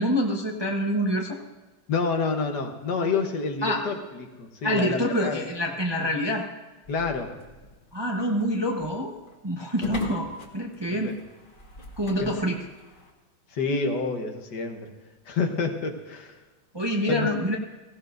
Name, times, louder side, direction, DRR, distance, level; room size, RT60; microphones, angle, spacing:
voice 1, 0.0-1.4 3.6-3.8 4.6-6.4 7.9-9.1 9.4-11.2 12.0-12.6 16.7-17.6, equal, 20° right, 0 dB, 0.9 m, -26 dB
voice 2, 1.9-5.4 6.9-7.3 9.8-10.0 10.9-11.2 12.2-12.3 13.5-14.9 15.3-16.4 17.1-17.3, left 4 dB, 65° left, 5 dB, 1.7 m, -28 dB
sound 1, 6.8-13.1, left 2 dB, 30° left, 1.6 m, -41 dB
17.5 x 16.5 x 2.6 m, 1.2 s
omnidirectional pair, 2.0 m